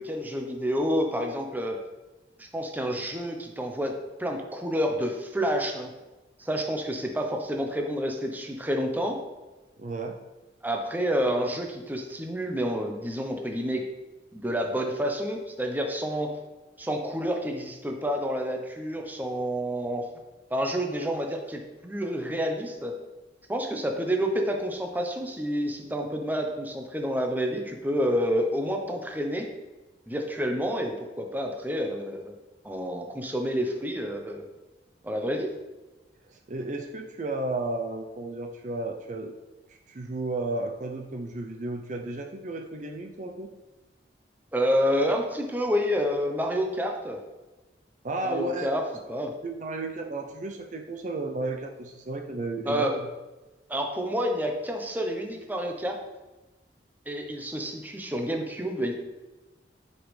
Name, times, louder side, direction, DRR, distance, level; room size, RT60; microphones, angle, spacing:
voice 1, 0.0-1.8 2.4-5.9 6.4-9.2 10.6-13.9 14.3-16.3 16.8-20.0 20.5-22.9 23.5-29.5 30.1-32.3 32.6-34.5 35.0-35.5 44.5-47.2 48.2-49.3 52.7-53.0 53.7-56.0 57.1-58.9, equal, 10° right, 3 dB, 0.8 m, -29 dB
voice 2, 9.8-10.2 36.3-39.3 39.9-43.5 48.0-48.7 49.4-53.0, right 2 dB, 45° right, 3 dB, 0.5 m, -33 dB
9.3 x 5.2 x 3.3 m, 1.1 s
head